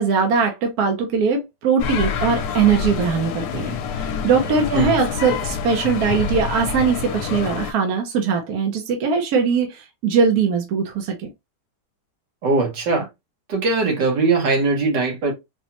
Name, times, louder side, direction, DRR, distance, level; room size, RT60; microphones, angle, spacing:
voice 1, 0.0-11.3, right 5 dB, 65° right, 1.3 m, -21 dB
sound 1, 1.8-7.7, left 6 dB, 70° left, 1.1 m, -27 dB
voice 2, 12.4-13.1 13.5-15.3, right 3 dB, 80° right, 1.9 m, -20 dB
4.2 x 2.3 x 2.9 m
omnidirectional pair, 1.8 m